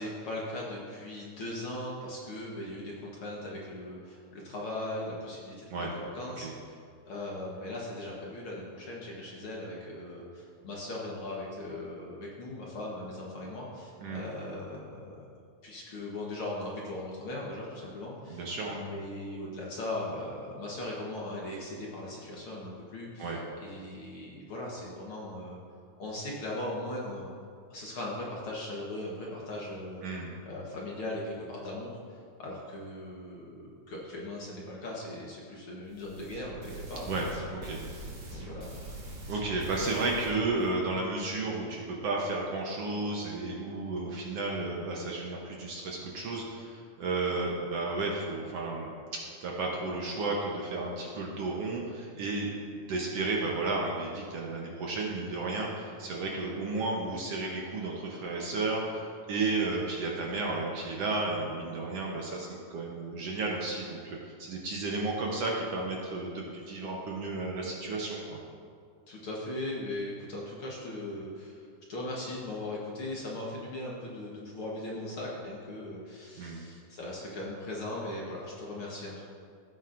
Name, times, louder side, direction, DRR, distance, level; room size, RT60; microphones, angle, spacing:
voice 1, 0.0-6.8 7.1-15.3 15.6-18.5 18.7-25.6 26.0-27.3 27.7-30.1 30.5-37.2 37.8-38.0 38.3-38.7 69.1-79.3, left 1 dB, 55° left, -4 dB, 1.7 m, -39 dB
voice 2, 18.3-18.8 23.2-23.4 30.0-30.3 37.1-37.3 37.5-37.8 39.3-48.9 49.4-52.5 52.8-68.4 76.4-76.6, right 3 dB, 65° right, -2 dB, 1.7 m, -33 dB
sound 1, 35.9-40.7, right 2 dB, 45° right, 1.7 m, -43 dB
15.5 x 9.0 x 2.6 m, 2.2 s
omnidirectional pair, 3.5 m